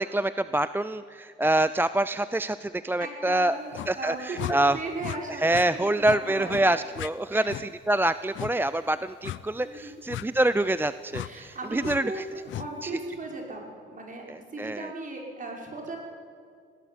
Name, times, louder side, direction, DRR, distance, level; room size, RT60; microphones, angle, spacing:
voice 1, 0.0-3.6 3.9-4.8 5.3-12.2 12.8-12.9 14.3-14.9, right 1 dB, 10° right, 14 dB, 0.5 m, -26 dB
voice 2, 3.0-6.7 7.3-7.6 9.6-10.0 11.2-16.0, right 2 dB, 40° right, 0 dB, 5.9 m, -37 dB
sound 1, 3.7-3.9 4.4-4.6 5.0-5.2 5.5-5.7 6.0-6.2 6.5-6.6 6.9-7.1 7.5-7.7 8.3-8.5 9.2-9.4 10.1-10.3 11.1-11.3 11.8-12.0 12.5-12.7, left 13 dB, 75° left, 0.7 m, -35 dB
19.0 x 18.5 x 9.8 m, 2.1 s
cardioid pair, 90°, 20 cm